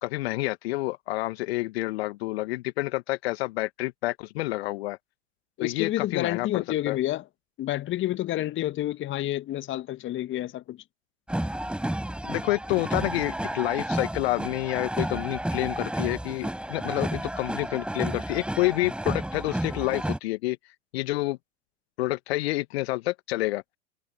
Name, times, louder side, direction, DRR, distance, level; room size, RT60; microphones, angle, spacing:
voice 1, 0.0-5.0 5.6-7.0 12.2-20.6 20.9-21.4 22.0-23.6, left 19 dB, 55° left, 1.7 m, -28 dB
voice 2, 5.6-7.2 7.6-10.8, left 14 dB, 30° left, 1.8 m, -29 dB
sound 1, 11.3-20.2, right 1 dB, 5° right, 5.4 m, -31 dB
figure-of-eight pair, 90°, 38 cm